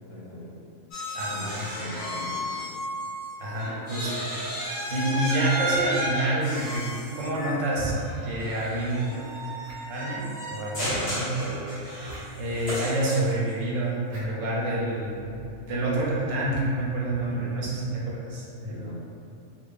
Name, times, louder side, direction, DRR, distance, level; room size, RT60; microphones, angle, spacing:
voice 1, 0.1-0.5 1.3-2.4 10.9-11.1 17.3-17.6 18.7-18.9, equal, 55° left, -10 dB, 1.0 m, -40 dB
sound 1, 0.9-3.3 3.6-13.5, equal, 80° left, 1.3 m, -33 dB
voice 2, 1.1-1.7 3.4-4.3 4.9-7.9 8.2-12.0 12.4-18.9, right 1 dB, 90° right, -5 dB, 1.0 m, -28 dB
sound 2, 3.6-4.7 6.7-7.5 8.9-9.5, equal, 25° left, 0.7 m, -47 dB
sound 3, 4.8-4.9 5.7-5.9 6.7-7.1 7.7-8.0 8.6-8.7 9.0-9.1 9.6-10.0 10.9-11.1 12.0-12.2 12.5-12.6 14.1-14.3, right 1 dB, 60° right, 0.7 m, -39 dB
2.9 x 2.2 x 2.3 m, 2.5 s
omnidirectional pair, 1.3 m